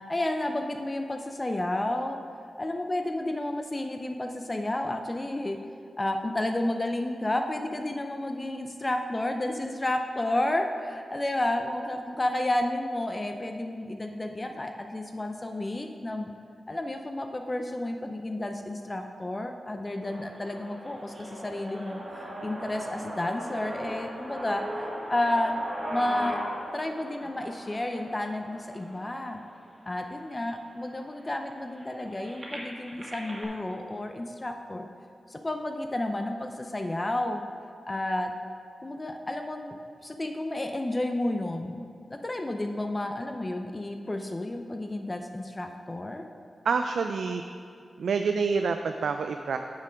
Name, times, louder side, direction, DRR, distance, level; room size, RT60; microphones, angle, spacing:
voice 1, 0.1-2.2 2.6-5.6 6.0-16.3 16.7-22.0 22.4-24.6 25.1-25.6 25.9-26.4 26.7-29.4 29.9-34.9 35.3-37.4 37.9-38.3 38.8-39.8 40.0-41.8 42.1-46.2, left 1 dB, 25° left, 5 dB, 0.5 m, -31 dB
sound 1, 20.0-30.0 30.6-30.7 31.0-33.5, equal, 35° right, 1.7 m, -39 dB
voice 2, 46.6-47.4 48.0-49.6, right 5 dB, 85° right, 6 dB, 0.3 m, -27 dB
7.0 x 6.7 x 5.0 m, 2.3 s
wide cardioid pair, 100°, 0 cm